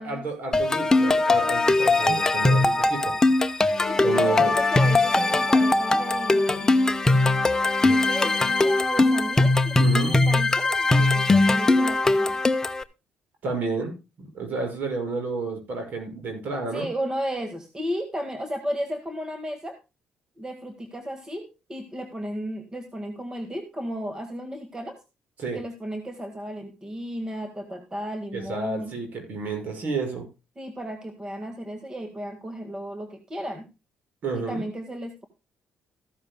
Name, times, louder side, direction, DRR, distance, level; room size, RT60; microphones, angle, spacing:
voice 1, 0.0-3.2 4.0-4.6 9.8-10.1 13.4-16.9 25.4-25.6 28.3-30.2 34.2-34.6, right 3 dB, 60° right, 4 dB, 6.2 m, -30 dB
sound 1, 0.5-12.8, left 2 dB, 15° left, 0.8 m, -21 dB
Wind instrument woodwind instrument, 3.5-8.8, left 7 dB, 55° left, 1.1 m, -38 dB
voice 2, 3.9-6.7 7.8-12.4 16.7-19.8 20.4-25.0 25.5-28.9 30.6-33.7 34.3-35.3, equal, 20° right, 6 dB, 1.8 m, -34 dB
14.5 x 12.5 x 2.2 m, 0.27 s
cardioid pair, 105°, 3 cm